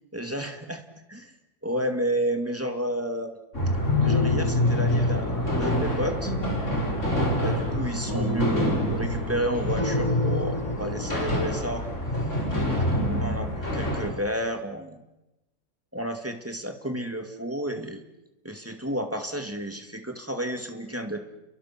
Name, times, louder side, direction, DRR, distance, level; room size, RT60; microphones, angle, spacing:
voice 1, 0.1-0.8 1.1-1.3 1.6-3.3 4.0-6.3 7.4-11.9 12.9-15.0 15.9-18.0 18.4-21.2, equal, 10° right, 5 dB, 2.3 m, -31 dB
sound 1, 3.5-14.1, left 1 dB, 55° left, 5.0 m, -26 dB
sound 2, 4.0-6.0 6.2-7.7 8.1-9.4 9.8-11.1, equal, 90° right, 7.4 m, -33 dB
30.0 x 24.0 x 6.1 m, 0.98 s
omnidirectional pair, 1.6 m